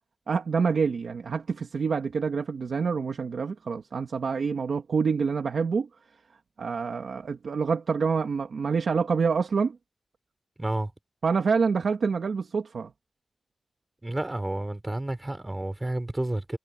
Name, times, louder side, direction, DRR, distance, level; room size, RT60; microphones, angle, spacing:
voice 1, 0.3-5.9 6.6-9.8 11.2-12.9, right 5 dB, 80° right, 1.7 m, -27 dB
voice 2, 10.6-10.9 14.0-16.6, right 1 dB, 20° right, 4.1 m, -30 dB
wide cardioid pair, 120°, 0 cm